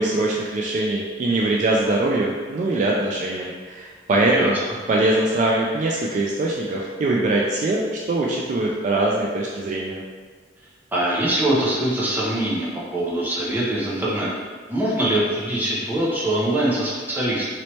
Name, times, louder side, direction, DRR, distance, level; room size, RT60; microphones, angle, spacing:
voice 1, 0.0-4.6 4.9-7.8 8.1-10.0, right 2 dB, 45° right, -2 dB, 0.3 m, -22 dB
voice 2, 10.9-14.3 14.7-17.5, right 1 dB, 10° right, -6 dB, 0.7 m, -23 dB
3.1 x 2.9 x 3.0 m, 1.5 s
head